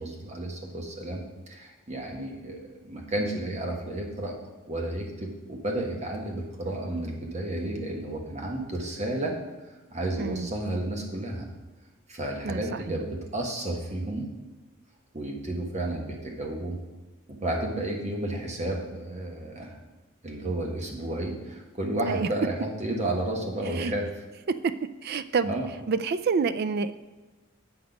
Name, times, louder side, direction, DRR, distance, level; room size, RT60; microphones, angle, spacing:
voice 1, 0.0-4.3 4.7-9.3 9.9-11.5 12.1-14.3 15.1-16.8 17.3-19.8 20.2-24.0 25.4-25.7, right 1 dB, 35° right, 0 dB, 1.4 m, -32 dB
voice 2, 10.2-10.5 12.4-12.8 22.0-22.3 23.8-23.9 24.5-24.7 25.0-25.5 25.9-26.9, right 5 dB, 50° right, 12 dB, 0.4 m, -27 dB
7.8 x 5.9 x 5.2 m, 1.2 s
head